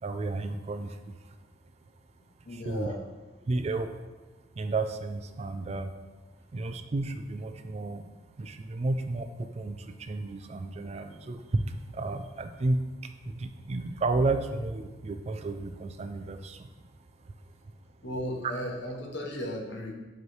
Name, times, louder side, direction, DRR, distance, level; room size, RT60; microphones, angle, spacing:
voice 1, 0.0-1.4 2.5-2.9 3.4-3.9 4.5-5.9 6.5-8.0 8.4-16.7 17.2-17.3, right 2 dB, 35° right, 8 dB, 0.3 m, -32 dB
voice 2, 2.4-3.0 4.5-4.6 18.0-19.9, equal, 70° left, 1 dB, 1.0 m, -35 dB
7.7 x 3.2 x 4.6 m, 1.2 s
head